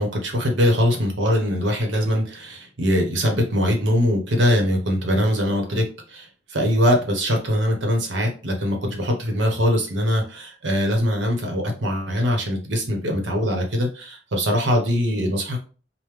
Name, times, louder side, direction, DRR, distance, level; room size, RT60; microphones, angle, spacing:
voice 1, 0.0-15.6, equal, 80° right, 2 dB, 1.2 m, -22 dB
5.3 x 2.2 x 3.2 m, 0.38 s
head